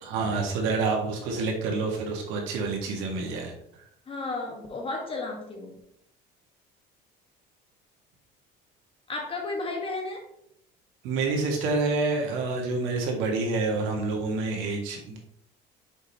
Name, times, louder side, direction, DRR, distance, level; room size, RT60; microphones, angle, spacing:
voice 1, 0.0-3.9 11.0-15.2, right 3 dB, 80° right, 0 dB, 1.8 m, -28 dB
voice 2, 4.1-5.8 9.1-10.2, left 3 dB, 25° left, 2 dB, 1.6 m, -33 dB
6.4 x 5.0 x 3.0 m, 0.72 s
cardioid pair, 120°, 20 cm